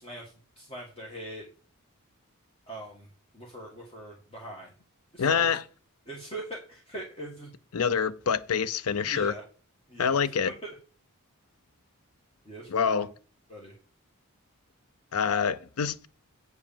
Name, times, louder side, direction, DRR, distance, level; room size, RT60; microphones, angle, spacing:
voice 1, 0.0-1.4 2.7-4.7 5.1-5.5 6.0-7.5 9.0-9.4 9.9-10.7 12.4-13.1 13.5-13.7, right 1 dB, 25° left, 1.8 m, -42 dB
voice 2, 5.2-5.6 7.7-9.3 10.0-10.5 12.7-13.1 15.1-16.1, left 6 dB, 80° left, 0.6 m, -26 dB
8.1 x 4.9 x 7.2 m
head